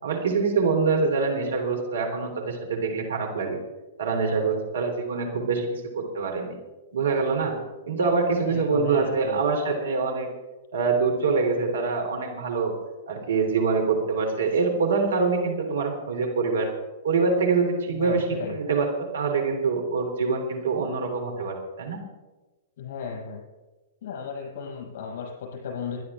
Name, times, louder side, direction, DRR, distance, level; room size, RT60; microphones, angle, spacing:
voice 1, 0.0-3.6 4.0-6.5 6.9-7.6 7.9-10.3 10.7-12.7 13.1-16.7 17.0-22.0, right 4 dB, 70° right, 2 dB, 3.3 m, -25 dB
voice 2, 8.3-9.4 17.9-18.6 22.8-23.4 24.0-26.0, left 6 dB, 55° left, -2 dB, 6.1 m, -35 dB
23.0 x 11.0 x 3.7 m, 1.2 s
figure-of-eight pair, 110°, 0 cm